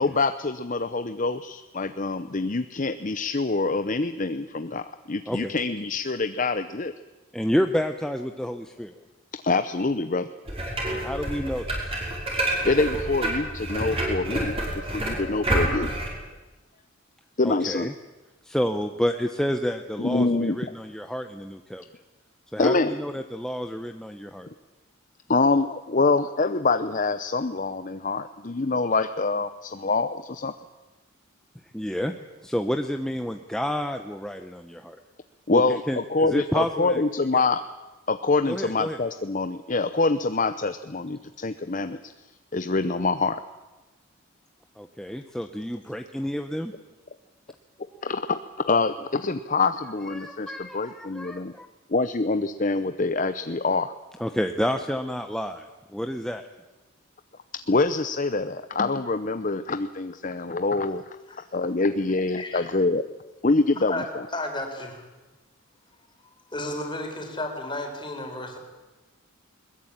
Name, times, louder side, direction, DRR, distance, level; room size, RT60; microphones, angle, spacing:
voice 1, 0.0-6.9 9.3-10.3 12.7-14.6 14.9-15.9 17.4-17.9 20.0-20.6 22.6-23.0 25.3-30.5 35.5-37.6 38.1-42.1 42.5-43.4 48.0-48.4 48.6-51.5 51.9-53.9 57.7-61.0 61.5-63.0 63.4-64.0, left 3 dB, 40° left, 10 dB, 0.7 m, -25 dB
voice 2, 7.3-8.9 10.9-11.9 17.4-17.9 18.4-21.8 22.5-24.5 31.7-32.1 32.4-35.0 35.5-35.6 35.9-37.0 37.3-37.4 38.5-39.0 44.8-46.7 50.1-51.7 54.2-55.7 55.9-56.4, equal, 5° left, 6 dB, 0.8 m, -29 dB
sound 1, 10.5-16.1, right 1 dB, 25° right, 6.0 m, -28 dB
voice 3, 64.3-65.1 66.5-68.6, left 1 dB, 25° left, 3 dB, 4.3 m, -33 dB
21.5 x 21.0 x 8.8 m, 1.2 s
head